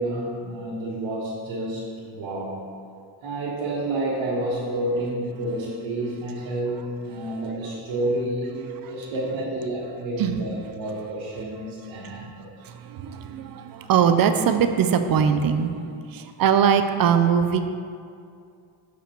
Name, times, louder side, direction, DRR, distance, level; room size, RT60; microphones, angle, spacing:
voice 1, 0.0-2.6 3.2-12.7, right 1 dB, 75° right, -8 dB, 1.5 m, -29 dB
voice 2, 12.0-12.3 12.6-17.6, right 7 dB, 50° right, 8 dB, 0.5 m, -22 dB
6.8 x 5.0 x 4.4 m, 2.4 s
cardioid pair, 120°, 45 cm